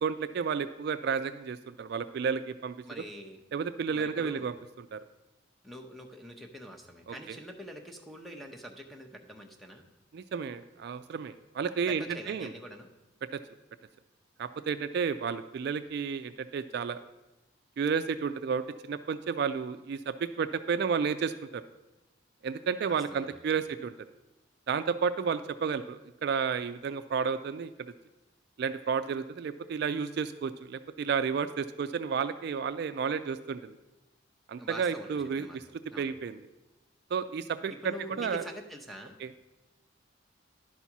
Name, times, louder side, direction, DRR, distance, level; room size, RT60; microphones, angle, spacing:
voice 1, 0.0-2.8 3.5-5.0 7.1-7.4 10.1-12.5 13.3-13.4 14.4-17.0 17.8-21.6 22.4-23.9 24.7-27.7 28.6-33.7 34.5-35.6 36.0-36.4 37.1-38.4 39.2-39.3, right 6 dB, 55° right, 11 dB, 0.3 m, -32 dB
voice 2, 2.9-3.4 3.9-4.5 5.6-9.9 11.9-12.9 22.8-23.4 34.6-35.6 35.9-36.1 37.8-39.2, equal, ahead, 3 dB, 0.7 m, -45 dB
11.0 x 4.2 x 5.9 m, 1.0 s
head